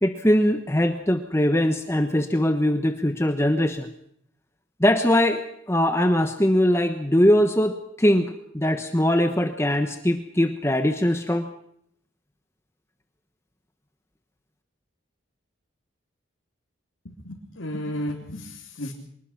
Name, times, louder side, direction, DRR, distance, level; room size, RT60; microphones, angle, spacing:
voice 1, 0.0-3.9 4.8-5.4 5.7-11.5, left 1 dB, 15° left, 7 dB, 1.2 m, -21 dB
voice 2, 17.1-18.9, left 1 dB, 85° left, -1 dB, 3.4 m, -33 dB
25.0 x 20.5 x 6.0 m, 0.70 s
head